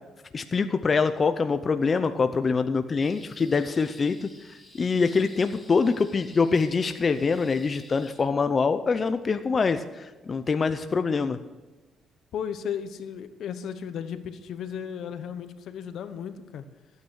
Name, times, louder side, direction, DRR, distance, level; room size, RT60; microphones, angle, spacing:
voice 1, 0.3-11.4, left 4 dB, 35° left, 9 dB, 0.6 m, -25 dB
sound 1, 3.0-8.1, left 1 dB, 5° left, 5.7 m, -53 dB
voice 2, 12.3-16.7, left 8 dB, 75° left, 11 dB, 1.0 m, -35 dB
14.5 x 9.4 x 6.4 m, 1.2 s
cardioid pair, 90°, 0 cm